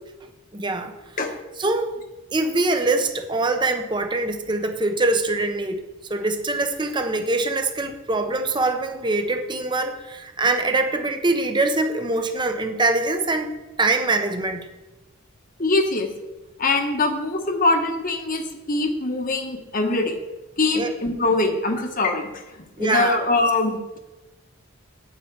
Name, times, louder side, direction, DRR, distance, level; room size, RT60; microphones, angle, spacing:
voice 1, 0.5-1.0 1.6-1.9 2.3-5.8 6.1-13.5 13.8-14.6 20.7-20.9 22.8-23.2, right 2 dB, 20° right, 6 dB, 0.9 m, -23 dB
voice 2, 15.6-16.1 16.6-20.2 20.6-22.4 22.8-24.0, left 2 dB, 40° left, 5 dB, 1.3 m, -23 dB
9.5 x 9.4 x 4.7 m, 1.1 s
head